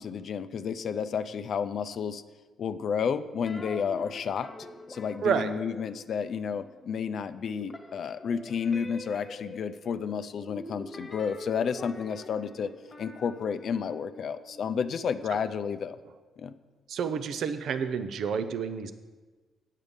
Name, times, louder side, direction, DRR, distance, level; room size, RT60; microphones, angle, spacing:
voice 1, 0.0-2.2 2.6-4.5 4.9-12.7 13.0-16.0 16.4-16.6, left 6 dB, 60° left, 11 dB, 0.5 m, -31 dB
sound 1, 3.4-7.2 7.5-15.3, left 1 dB, 20° left, 1.6 m, -46 dB
voice 2, 5.2-5.5 16.9-18.9, right 7 dB, 70° right, 11 dB, 0.6 m, -29 dB
8.2 x 7.4 x 5.2 m, 1.3 s
cardioid pair, 90°, 0 cm